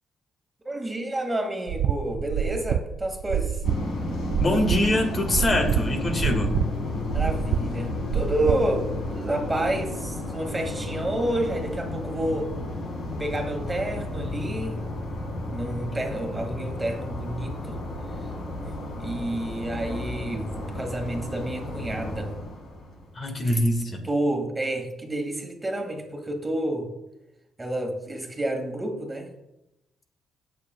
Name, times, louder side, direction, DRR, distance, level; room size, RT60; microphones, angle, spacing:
voice 1, 0.7-3.6 7.1-8.9 9.1-12.5 13.2-14.8 15.5-17.8 18.1-18.2 18.9-22.3 23.4-23.6 24.0-26.9 27.6-29.3, right 1 dB, 15° right, 3 dB, 1.9 m, -29 dB
sound 1, 1.7-9.1, right 9 dB, 80° right, 0.4 m, -27 dB
sound 2, 3.6-23.1, left 2 dB, 70° left, 3.4 m, -32 dB
voice 2, 4.4-6.6 23.2-24.0, left 1 dB, 35° left, 3 dB, 1.7 m, -24 dB
18.5 x 6.9 x 2.3 m, 0.90 s
cardioid pair, 90°, 0 cm